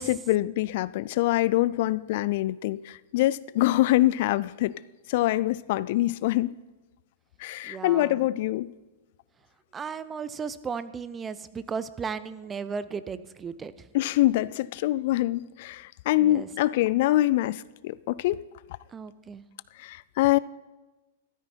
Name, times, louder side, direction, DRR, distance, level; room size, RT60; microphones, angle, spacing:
voice 1, 0.0-4.7 5.1-6.5 7.4-8.7 13.9-18.4 19.8-20.4, left 16 dB, 55° left, 0.3 m, -25 dB
voice 2, 7.6-8.3 9.7-13.9 16.2-16.5 18.9-19.5, right 6 dB, 20° right, 0.6 m, -35 dB
13.5 x 12.5 x 4.4 m
hypercardioid pair, 105°, 0 cm